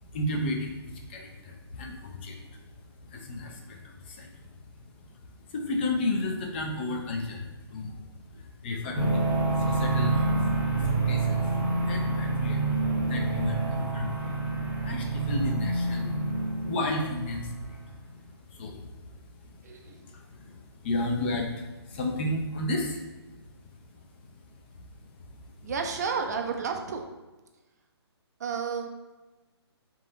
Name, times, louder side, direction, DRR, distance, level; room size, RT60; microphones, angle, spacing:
voice 1, 0.1-2.7 3.1-5.2 5.5-10.4 10.7-11.6 11.8-17.8 18.2-23.7 24.2-24.3 24.7-25.1 25.6-25.7, left 2 dB, 25° left, 1 dB, 0.4 m, -34 dB
sound 1, 8.9-17.2, right 2 dB, 10° right, 0.8 m, -27 dB
voice 2, 19.6-20.0 25.6-27.0 28.4-28.9, right 5 dB, 40° right, 4 dB, 0.4 m, -31 dB
3.7 x 2.9 x 3.8 m, 1.2 s
hypercardioid pair, 155°, 14 cm